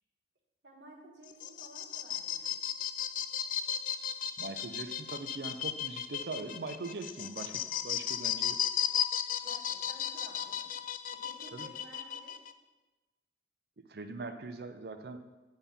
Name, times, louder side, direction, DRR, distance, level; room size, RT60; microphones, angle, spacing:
voice 1, 0.6-2.5 9.4-10.7 11.1-12.4, right 2 dB, 85° right, -3 dB, 1.5 m, -54 dB
sound 1, 1.2-12.5, left 9 dB, 50° left, 0.3 m, -35 dB
voice 2, 4.4-8.6 11.5-11.7 13.8-15.2, right 3 dB, 60° right, 8 dB, 0.6 m, -41 dB
8.8 x 3.5 x 5.6 m, 1.2 s
head